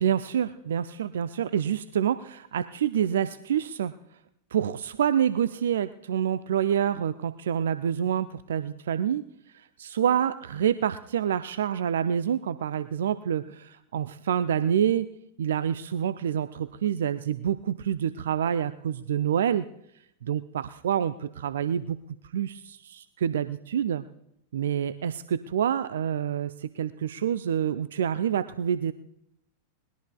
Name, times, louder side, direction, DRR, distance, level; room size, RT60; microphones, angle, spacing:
voice 1, 0.0-3.9 4.5-9.2 9.8-15.1 15.4-19.7 20.3-20.4 20.8-22.0 22.3-24.1 24.5-28.9, right 9 dB, 60° right, 14 dB, 0.4 m, -27 dB
20.5 x 19.5 x 2.3 m, 0.76 s
figure-of-eight pair, 90°, 0 cm